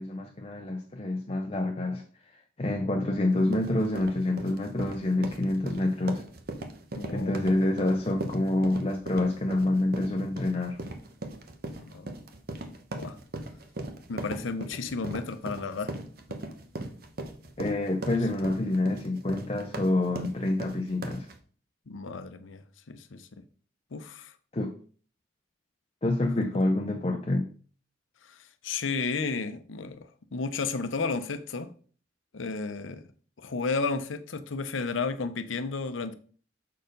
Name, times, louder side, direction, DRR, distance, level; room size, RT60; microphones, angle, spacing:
voice 1, 0.0-2.0 2.3-6.2 7.1-10.8 17.6-21.3 24.5-24.8 26.0-27.5, left 2 dB, 30° left, 0.5 m, -27 dB
sound 1, 3.3-21.4, right 2 dB, 50° right, 0.9 m, -39 dB
voice 2, 6.9-7.3 11.8-12.1 12.9-13.2 14.1-16.0 18.1-18.2 21.9-23.4 23.9-24.3 28.2-31.7 32.3-33.0 33.4-36.1, left 4 dB, 90° left, 0.7 m, -33 dB
6.4 x 4.4 x 5.2 m
head